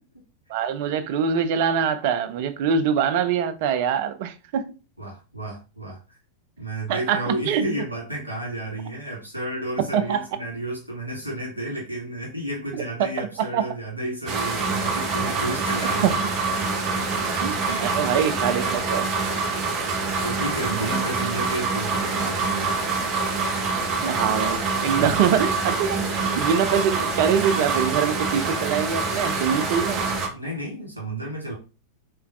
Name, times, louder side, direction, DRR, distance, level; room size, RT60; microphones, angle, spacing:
voice 1, 0.5-4.8 6.9-7.7 9.9-10.2 12.7-13.6 16.0-16.2 17.4-19.1 24.0-26.0 26.4-30.0, right 7 dB, 50° right, 0.4 m, -24 dB
voice 2, 5.0-6.2 6.6-16.2 16.9-17.1 17.6-18.2 20.2-22.8 24.9-25.2 30.3-31.6, right 1 dB, 90° left, 1.6 m, -32 dB
sound 1, 14.3-30.3, right 4 dB, 35° right, 0.8 m, -25 dB
3.3 x 3.0 x 2.3 m
figure-of-eight pair, 90°, 0 cm